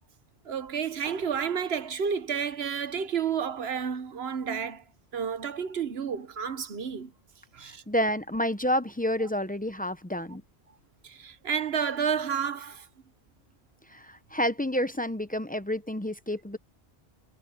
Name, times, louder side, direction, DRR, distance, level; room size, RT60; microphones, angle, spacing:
voice 1, 0.4-4.8 5.1-7.1 7.5-7.8 11.0-12.9, right 7 dB, 65° right, 1.2 m, -31 dB
voice 2, 7.6-10.4 13.9-16.6, equal, 10° left, 0.5 m, -29 dB
omnidirectional pair, 1.1 m